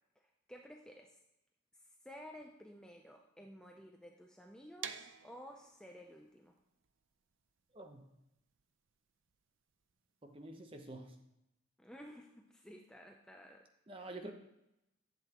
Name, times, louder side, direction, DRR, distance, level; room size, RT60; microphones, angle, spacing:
voice 1, 0.2-1.2 1.7-6.5 11.8-13.7 14.0-14.3, equal, 5° left, 1 dB, 0.4 m, -54 dB
sound 1, 4.8-10.6, right 8 dB, 70° right, 0.5 m, -51 dB
voice 2, 7.7-8.1 10.2-11.1 13.9-14.3, right 2 dB, 25° right, 4 dB, 0.9 m, -48 dB
11.0 x 8.1 x 2.9 m, 0.86 s
head